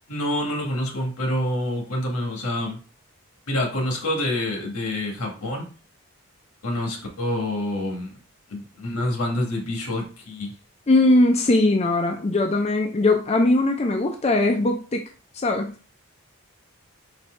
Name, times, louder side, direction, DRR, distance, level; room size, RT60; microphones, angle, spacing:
voice 1, 0.1-2.8 3.5-5.7 6.6-8.1 8.5-10.5, left 1 dB, 85° left, 2 dB, 1.4 m, -27 dB
voice 2, 10.9-15.0 15.3-15.7, left 2 dB, 30° left, 2 dB, 0.4 m, -20 dB
4.2 x 2.7 x 4.3 m, 0.37 s
head